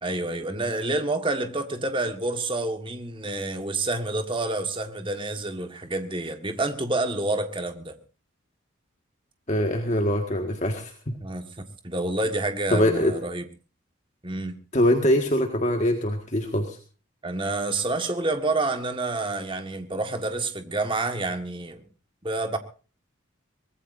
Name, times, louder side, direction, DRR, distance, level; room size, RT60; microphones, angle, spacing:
voice 1, 0.0-8.0 11.2-13.4 14.2-14.6 17.2-21.8 22.2-22.6, right 2 dB, 25° right, 1.7 m, -28 dB
voice 2, 9.5-11.1 12.7-13.1 14.7-16.8, left 1 dB, 35° left, 1.8 m, -23 dB
23.5 x 19.5 x 2.7 m
head